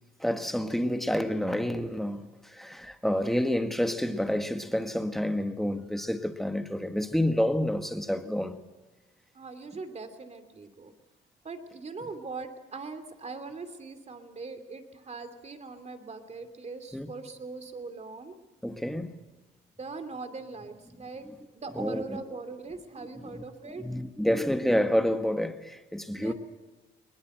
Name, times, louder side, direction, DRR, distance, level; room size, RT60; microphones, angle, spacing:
voice 1, 0.2-8.6 16.9-17.1 18.6-19.1 21.8-22.2 23.3-23.4 23.8-26.3, equal, ahead, 1.6 m, -29 dB
voice 2, 9.3-10.9 11.4-18.3 19.8-21.3 21.5-23.8 26.1-26.3, right 4 dB, 35° right, 2.8 m, -41 dB
21.0 x 20.5 x 7.9 m
cardioid pair, 90°, 20 cm